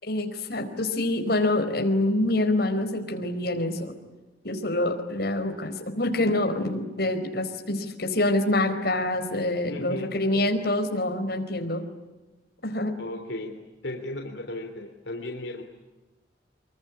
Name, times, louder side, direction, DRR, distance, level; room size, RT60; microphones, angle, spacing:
voice 1, 0.0-3.9 4.4-11.8 12.6-12.9, left 1 dB, 55° left, 5 dB, 4.6 m, -26 dB
voice 2, 9.7-10.1 13.0-15.6, left 1 dB, 75° left, 3 dB, 3.1 m, -36 dB
25.5 x 22.5 x 10.0 m, 1.2 s
head